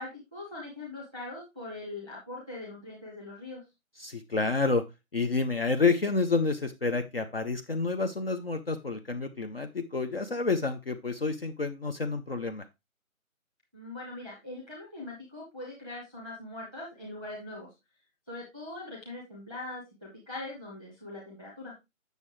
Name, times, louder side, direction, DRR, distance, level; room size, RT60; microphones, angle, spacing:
voice 1, 0.0-3.6 13.7-17.7 18.3-21.7, left 2 dB, 5° left, -3 dB, 0.9 m, -41 dB
voice 2, 4.0-4.8 5.1-12.6, left 4 dB, 45° left, 7 dB, 0.6 m, -29 dB
8.1 x 6.5 x 3.0 m, 0.23 s
figure-of-eight pair, 155°, 42 cm